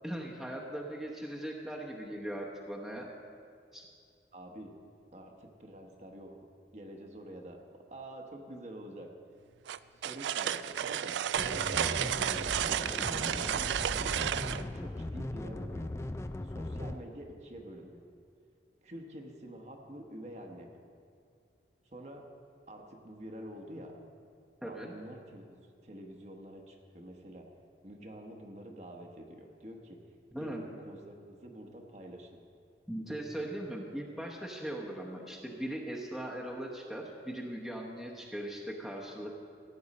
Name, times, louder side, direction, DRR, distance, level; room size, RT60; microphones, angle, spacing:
voice 1, 0.0-3.1 3.7-3.9 11.8-12.1 24.6-24.9 30.3-30.6 32.9-39.3, right 1 dB, ahead, -2 dB, 0.9 m, -39 dB
voice 2, 4.3-4.8 5.1-6.4 6.7-7.6 7.9-9.1 9.9-11.2 13.1-15.9 16.4-18.0 18.8-20.8 21.8-22.3 22.7-24.0 24.7-25.6 25.8-27.4 27.8-30.0 30.3-32.3, right 1 dB, 40° right, 2 dB, 1.0 m, -47 dB
sound 1, 9.7-14.6, right 9 dB, 90° right, 0.3 m, -32 dB
sound 2, 11.3-17.0, left 1 dB, 15° left, 0.3 m, -38 dB
16.0 x 8.7 x 4.2 m, 2.3 s
head